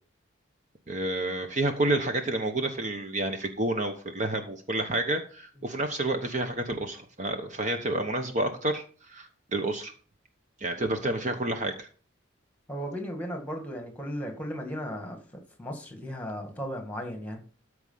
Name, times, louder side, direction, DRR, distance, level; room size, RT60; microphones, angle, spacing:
voice 1, 0.9-9.9 10.6-11.9, right 2 dB, 35° right, 5 dB, 1.0 m, -29 dB
voice 2, 12.7-17.4, equal, 10° left, 4 dB, 1.8 m, -36 dB
13.5 x 4.8 x 5.6 m, 0.41 s
head